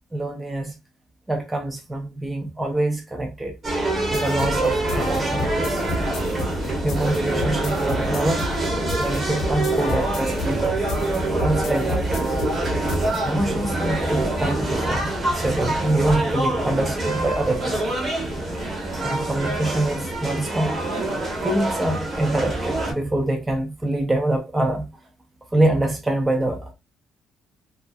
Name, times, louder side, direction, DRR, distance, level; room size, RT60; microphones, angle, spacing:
voice 1, 0.1-0.8 1.3-3.5 4.1-5.9 6.8-8.5 9.0-10.8 11.4-12.2 13.2-17.9 19.0-20.8 21.4-24.9 25.5-26.7, right 1 dB, 10° right, 0.4 m, -25 dB
sound 1, 3.6-22.9, right 2 dB, 25° right, 0.8 m, -25 dB
sound 2, 4.1-13.3, left 2 dB, 70° left, 0.6 m, -32 dB
2.4 x 2.4 x 2.3 m
cardioid pair, 150°, 0 cm